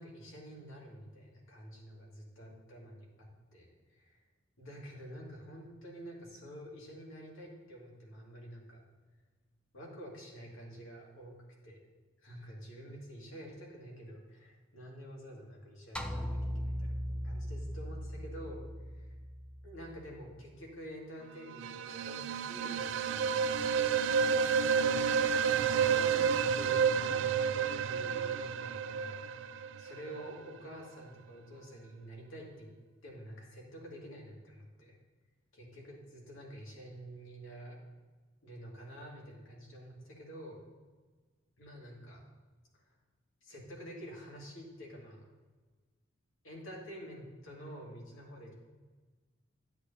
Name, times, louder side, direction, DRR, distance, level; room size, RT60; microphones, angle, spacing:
voice 1, 0.0-4.2 4.6-8.8 9.7-11.3 11.6-11.8 12.2-18.0 18.2-19.2 19.6-25.1 25.5-26.2 26.5-27.3 27.5-29.2 29.5-32.7 33.0-35.0 35.5-37.8 38.4-40.6 41.6-42.2 43.4-45.3 46.4-48.5, equal, 90° left, -2 dB, 2.2 m, -49 dB
sound 1, 16.0-20.4, equal, 5° left, 0.4 m, -39 dB
sound 2, 21.5-30.3, right 6 dB, 65° right, 0.3 m, -30 dB
11.0 x 8.1 x 2.8 m, 1.3 s
head